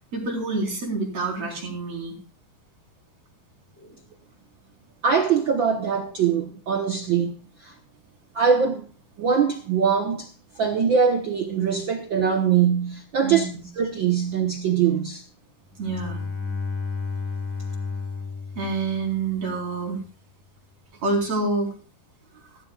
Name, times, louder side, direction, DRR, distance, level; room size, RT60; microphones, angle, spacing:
voice 1, 0.1-2.2 3.8-3.9 13.2-13.7 15.8-16.2 18.6-20.0 21.0-21.7, right 3 dB, 50° right, 5.3 m, -27 dB
voice 2, 5.0-7.7 8.3-8.9 9.2-10.3 10.6-13.5 13.7-15.2, right 7 dB, 80° right, 1.0 m, -22 dB
Bowed string instrument, 15.7-19.5, left 4 dB, 85° left, 7.1 m, -32 dB
17.0 x 14.0 x 2.4 m
omnidirectional pair, 3.8 m